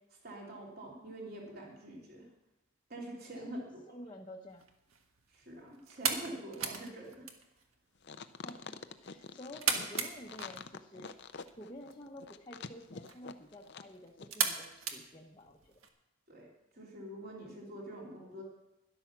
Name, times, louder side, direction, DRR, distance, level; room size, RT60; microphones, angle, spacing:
voice 1, 0.1-2.3 2.9-3.6 5.3-7.3 16.3-16.5 16.7-18.4, right 1 dB, 45° right, -2 dB, 3.3 m, -45 dB
voice 2, 3.9-4.6 8.4-11.1 11.6-15.8, equal, 20° left, -1 dB, 0.9 m, -50 dB
sound 1, 4.5-15.9, right 6 dB, 75° right, 1.5 m, -40 dB
sound 2, 8.0-13.9 14.2-14.3, left 5 dB, 50° left, 0.6 m, -46 dB
13.0 x 11.0 x 6.0 m, 0.94 s
head